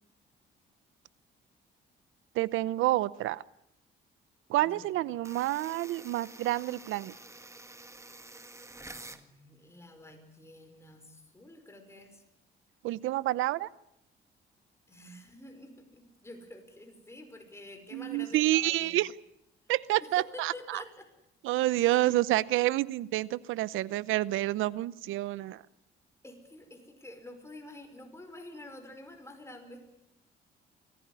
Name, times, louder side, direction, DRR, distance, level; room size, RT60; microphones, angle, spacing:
voice 1, 2.3-3.4 4.5-7.1 12.8-13.7 17.9-19.1 19.7-20.8 21.4-25.6, right 16 dB, 90° right, 20 dB, 0.8 m, -28 dB
voice 2, 4.6-5.3 9.0-12.2 14.9-19.1 20.0-21.1 21.7-22.2 26.2-30.1, left 1 dB, 15° left, 5 dB, 5.3 m, -49 dB
sound 1, 5.2-9.2, right 2 dB, 15° right, 1.8 m, -49 dB
24.0 x 15.5 x 9.8 m, 0.82 s
cardioid pair, 90°, 20 cm